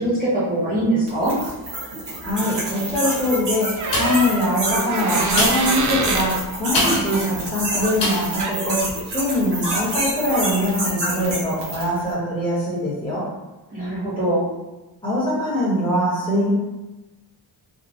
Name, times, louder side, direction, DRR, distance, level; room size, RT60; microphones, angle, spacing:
voice 1, 0.0-1.3 6.7-7.0 13.7-14.5, right 1 dB, 20° right, -11 dB, 1.3 m, -22 dB
sound 1, 1.1-12.0, right 1 dB, 75° right, 1.2 m, -27 dB
voice 2, 2.2-3.7 4.0-8.8 9.1-13.2 15.0-16.5, left 1 dB, 10° left, -9 dB, 1.4 m, -22 dB
sound 2, 3.8-4.4 5.2-7.2 8.0-8.4 8.9-9.0, left 2 dB, 80° left, 1.2 m, -25 dB
sound 3, 3.8-6.3 8.4-8.6, right 4 dB, 45° right, 0.4 m, -26 dB
3.8 x 2.4 x 2.5 m, 1.1 s
wide cardioid pair, 115°, 42 cm